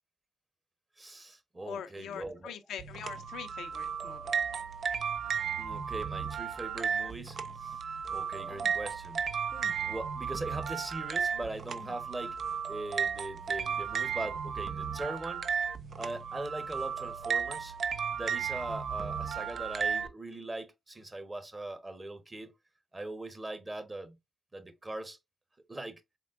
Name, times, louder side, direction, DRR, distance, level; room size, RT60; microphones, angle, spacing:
voice 1, 1.0-2.5 5.6-7.8 8.1-9.2 9.8-12.4 12.7-15.5 16.0-17.8 18.1-22.5 22.9-24.1 24.5-25.2 25.7-26.0, right 2 dB, 30° right, 1.2 m, -41 dB
voice 2, 1.6-4.3, left 8 dB, 85° left, 0.5 m, -43 dB
sound 1, 2.8-20.1, right 7 dB, 65° right, 0.4 m, -34 dB
sound 2, 8.3-9.0 9.5-9.8 10.7-10.8 11.6-12.0 12.9-13.0, left 3 dB, 35° left, 0.6 m, -52 dB
4.3 x 3.7 x 2.5 m
supercardioid pair, 45°, 0 cm